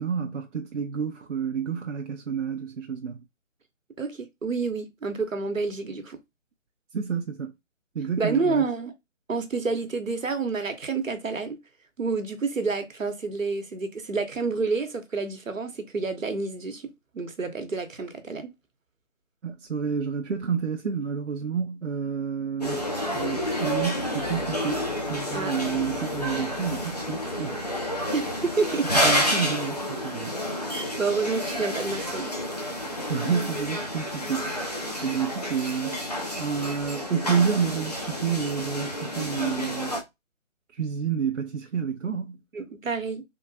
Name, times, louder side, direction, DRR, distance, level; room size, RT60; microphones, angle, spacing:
voice 1, 0.0-3.2 6.9-7.5 7.9-8.7 19.4-27.7 28.8-30.4 32.9-34.5 35.0-36.0 36.3-40.0 40.7-42.4, right 6 dB, 65° right, 0.5 m, -29 dB
voice 2, 4.0-6.2 8.2-8.9 9.3-11.6 12.0-18.5 25.3-25.6 28.1-28.9 31.0-32.3 42.5-43.2, right 4 dB, 80° right, 1.0 m, -29 dB
sound 1, 22.6-40.0, equal, 35° left, 0.5 m, -29 dB
3.4 x 2.2 x 2.6 m
figure-of-eight pair, 155°, 38 cm